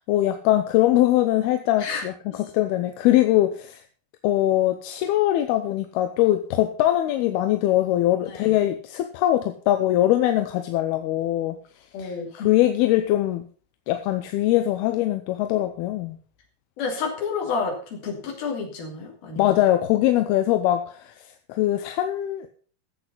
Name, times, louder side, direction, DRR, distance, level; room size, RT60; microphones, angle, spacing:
voice 1, 0.1-3.8 4.2-11.6 12.0-13.4 13.9-16.2 19.4-22.5, left 14 dB, 85° left, 7 dB, 2.8 m, -22 dB
voice 2, 11.9-12.5 16.8-19.5, left 5 dB, 70° left, 1 dB, 4.8 m, -30 dB
14.0 x 8.1 x 5.6 m, 0.42 s
omnidirectional pair, 4.5 m